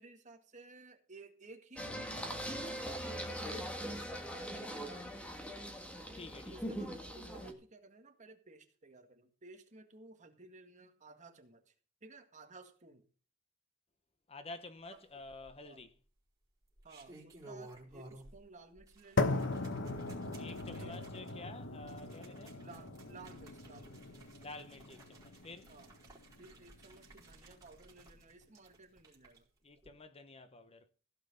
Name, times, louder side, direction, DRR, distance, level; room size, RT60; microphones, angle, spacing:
voice 1, 0.0-2.4 2.8-5.8 6.5-11.7 12.0-13.1 14.9-15.0 15.6-15.9 16.8-19.5 20.8-21.0 22.6-24.0 25.7-26.0 26.4-29.5, right 3 dB, 35° right, 1.9 m, -56 dB
Singing, 1.8-7.5, equal, 5° left, 1.9 m, -41 dB
voice 2, 3.1-3.5 6.1-6.5 14.3-15.9 20.4-22.6 24.4-25.7 29.6-30.9, left 2 dB, 30° left, 0.9 m, -50 dB
sound 1, 15.2-15.8 16.6-18.5 18.8-29.4 29.8-29.9, right 2 dB, 15° right, 4.3 m, -57 dB
sound 2, 19.2-27.2, left 3 dB, 65° left, 1.0 m, -39 dB
16.0 x 6.0 x 6.9 m
head